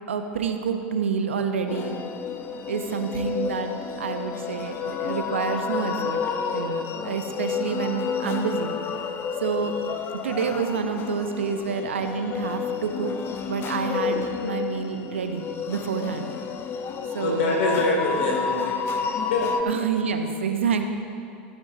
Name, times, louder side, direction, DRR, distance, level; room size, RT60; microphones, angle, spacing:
voice 1, 0.1-2.0 2.7-3.7 4.0-6.2 6.5-8.7 9.4-9.7 10.2-13.1 13.5-16.3 17.1-17.6 19.7-20.8, right 6 dB, 85° right, 6 dB, 0.8 m, -28 dB
sound 1, 1.7-19.6, left 6 dB, 35° left, 0.7 m, -30 dB
voice 2, 17.2-18.8 19.3-19.5, left 2 dB, 70° left, 0 dB, 2.4 m, -24 dB
15.5 x 9.0 x 2.7 m, 2.5 s
hypercardioid pair, 90°, 6 cm